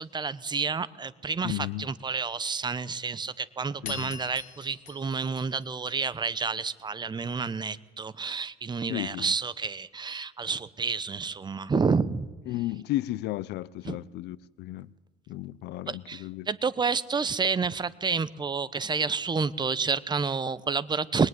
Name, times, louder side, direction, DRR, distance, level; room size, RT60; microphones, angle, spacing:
voice 1, 0.0-12.3 13.8-14.0 15.9-21.3, right 5 dB, 25° right, 0.9 m, -29 dB
voice 2, 1.4-1.9 3.8-4.1 8.9-9.4 12.5-14.9 15.3-16.5, left 16 dB, 80° left, 0.7 m, -34 dB
sound 1, 3.8-6.4, left 8 dB, 50° left, 3.2 m, -44 dB
22.0 x 21.5 x 9.6 m
cardioid pair, 110°, 17 cm